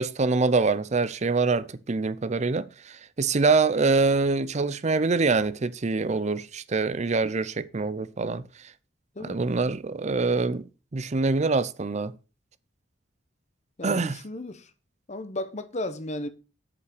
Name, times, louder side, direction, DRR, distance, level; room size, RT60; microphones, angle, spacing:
voice 1, 0.0-8.4 9.3-10.7 10.9-12.2 13.8-14.2, right 3 dB, 40° right, 0.6 m, -25 dB
voice 2, 9.1-9.5 13.8-14.7 15.1-16.3, left 1 dB, 40° left, 1.0 m, -34 dB
8.1 x 5.5 x 6.6 m
head